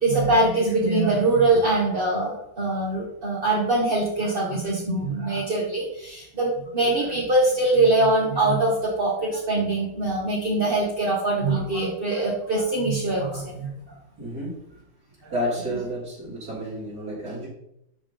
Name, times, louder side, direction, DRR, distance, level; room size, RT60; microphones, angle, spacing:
voice 1, 0.0-13.7 15.2-15.3, right 2 dB, 35° right, -4 dB, 1.7 m, -23 dB
voice 2, 14.2-14.6 15.3-17.5, equal, 65° right, -8 dB, 4.1 m, -30 dB
12.5 x 4.8 x 3.9 m, 0.79 s
omnidirectional pair, 1.7 m